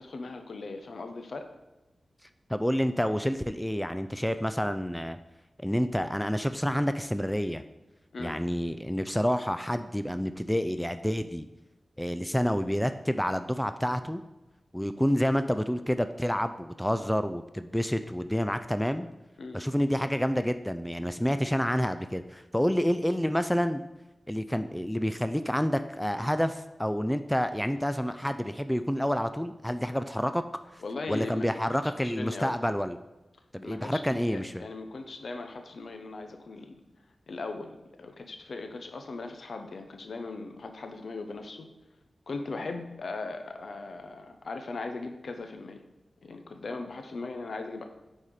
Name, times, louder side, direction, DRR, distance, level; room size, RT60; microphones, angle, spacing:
voice 1, 0.0-1.5 8.1-8.4 19.4-19.6 30.8-32.5 33.6-36.8 37.3-41.7 42.3-45.8 46.2-47.8, left 3 dB, 70° left, 6 dB, 0.9 m, -39 dB
voice 2, 2.5-5.2 5.6-7.6 8.2-11.5 12.0-14.2 14.7-19.1 19.5-23.8 24.3-30.4 31.1-33.0 33.5-34.6, equal, 5° left, 10 dB, 0.3 m, -28 dB
8.8 x 4.2 x 4.8 m, 1.1 s
wide cardioid pair, 110°, 0 cm